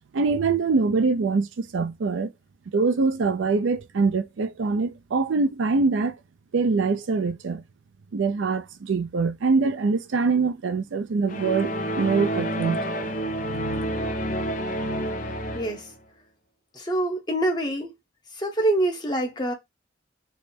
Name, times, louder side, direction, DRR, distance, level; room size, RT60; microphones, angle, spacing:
voice 1, 0.1-2.3 2.7-6.2 6.5-7.6 8.1-12.8, right 4 dB, 85° right, 0.5 m, -24 dB
sound 1, 11.3-15.9, equal, 45° left, 0.6 m, -29 dB
voice 2, 16.7-17.9 18.4-19.5, right 1 dB, 25° left, 0.9 m, -25 dB
3.3 x 2.1 x 4.2 m
head